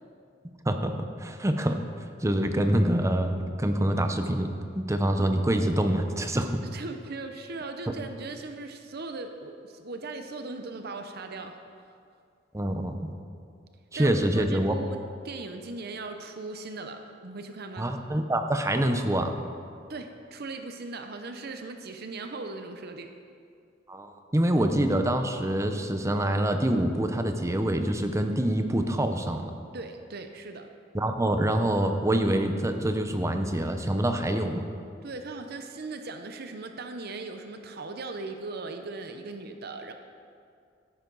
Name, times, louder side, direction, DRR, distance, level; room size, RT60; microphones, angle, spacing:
voice 1, 1.2-1.8 2.2-4.5 4.7-6.6 12.5-13.1 13.9-14.7 17.8-19.3 23.9-29.5 30.9-34.6, right 1 dB, 15° right, 6 dB, 0.7 m, -26 dB
voice 2, 6.7-11.6 11.8-12.0 13.9-15.0 15.2-17.9 19.9-23.1 29.7-30.7 35.0-39.9, right 3 dB, 55° right, 6 dB, 0.7 m, -38 dB
14.0 x 10.5 x 4.0 m, 2.3 s
head